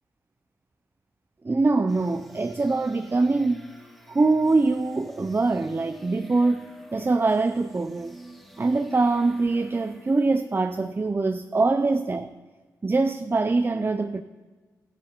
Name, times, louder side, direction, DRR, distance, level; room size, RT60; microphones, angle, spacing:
voice 1, 1.4-3.6 4.1-8.2 8.6-12.3 12.8-14.2, right 3 dB, 30° right, 10 dB, 0.5 m, -23 dB
sound 1, 1.9-10.7, equal, ahead, 2.0 m, -47 dB
12.5 x 10.0 x 3.0 m, 1.4 s
supercardioid pair, 45°, 8 cm